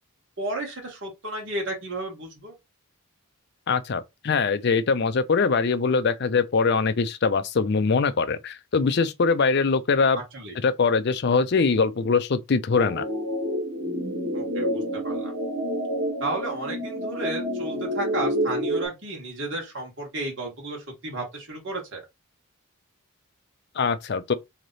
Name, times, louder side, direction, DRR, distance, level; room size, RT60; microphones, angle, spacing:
voice 1, 0.4-2.5 10.1-10.6 14.3-15.3 16.2-22.0, right 2 dB, 55° right, 1.5 m, -33 dB
voice 2, 3.7-10.2 10.6-13.0 23.8-24.3, left 4 dB, 50° left, 0.4 m, -22 dB
sound 1, 12.7-18.9, equal, 85° right, 1.4 m, -28 dB
3.2 x 2.8 x 3.9 m
head